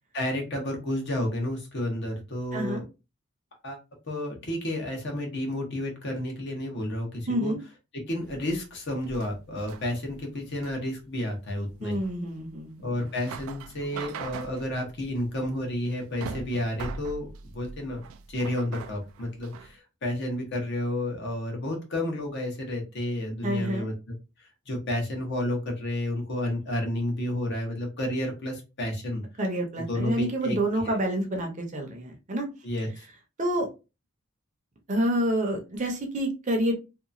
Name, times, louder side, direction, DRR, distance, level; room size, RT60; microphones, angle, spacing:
voice 1, 0.1-2.8 3.6-3.8 4.1-7.5 8.1-12.0 12.8-18.0 18.3-29.2 29.8-30.6 30.8-31.0 32.6-33.1, left 1 dB, 60° left, 2 dB, 0.9 m, -31 dB
voice 2, 2.5-2.8 7.3-7.6 11.8-13.0 23.4-23.9 29.4-32.5 33.4-33.7 34.9-36.7, right 1 dB, 40° right, 3 dB, 0.6 m, -28 dB
sound 1, 8.2-19.8, right 5 dB, 85° right, 0.3 m, -42 dB
2.8 x 2.3 x 2.5 m, 0.28 s
head